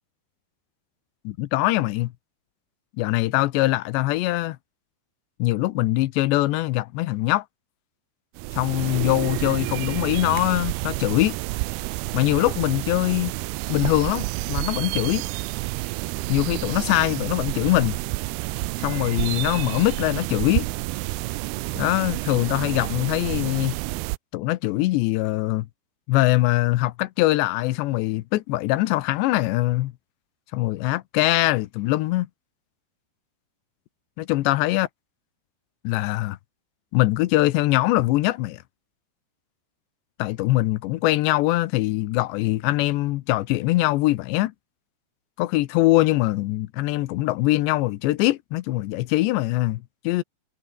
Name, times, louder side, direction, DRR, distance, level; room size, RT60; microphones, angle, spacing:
voice 1, 1.2-2.1 3.0-4.6 5.4-7.4 8.5-11.4 12.1-13.4 13.7-15.3 16.3-18.0 18.8-20.7 21.8-23.7 24.3-25.7 26.1-29.9 30.5-32.3 34.2-34.9 35.8-36.4 36.9-38.6 40.2-44.5 45.4-50.2, left 18 dB, 85° left, 3.1 m, -22 dB
sound 1, 8.4-24.2, right 22 dB, 80° right, 2.3 m, -29 dB
omnidirectional pair, 4.9 m